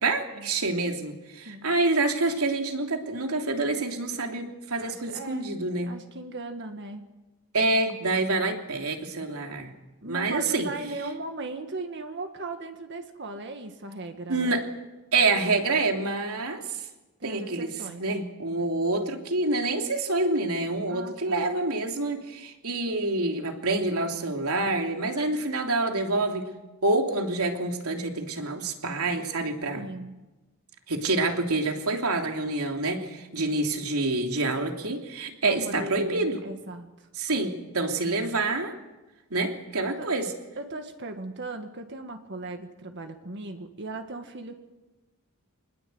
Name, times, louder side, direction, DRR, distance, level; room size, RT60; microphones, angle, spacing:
voice 1, 0.0-5.9 7.5-9.7 10.0-10.7 14.3-14.6 15.1-16.6 17.2-17.7 18.0-26.5 26.8-29.9 30.9-36.4 37.2-38.7 39.3-40.3, right 2 dB, 85° right, 3 dB, 3.1 m, -27 dB
voice 2, 4.8-5.4 5.8-7.1 10.0-14.6 17.2-18.0 20.9-21.5 29.7-30.1 35.4-37.1 39.8-40.1 40.6-44.5, right 2 dB, 55° right, 6 dB, 1.8 m, -38 dB
26.0 x 20.0 x 8.0 m, 1.1 s
head